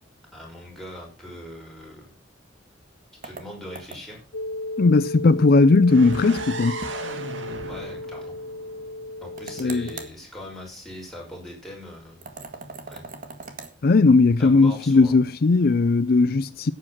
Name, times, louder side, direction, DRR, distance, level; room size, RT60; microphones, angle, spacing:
voice 1, 0.3-2.1 3.2-4.2 7.7-8.4 9.2-12.4 12.8-13.0 14.4-15.3, left 1 dB, ahead, 6.0 m, -41 dB
sound 1, 3.2-4.3 6.1-6.5 6.8-7.0 7.3-7.4 9.4-10.2 12.2-13.7, right 3 dB, 45° right, 1.9 m, -40 dB
sound 2, 4.3-10.1, left 2 dB, 90° left, 0.8 m, -35 dB
voice 2, 4.8-6.8 9.6-9.9 13.8-16.7, left 3 dB, 55° left, 0.5 m, -18 dB
sound 3, 5.9-9.7, right 3 dB, 75° right, 2.0 m, -37 dB
11.0 x 8.7 x 6.0 m
head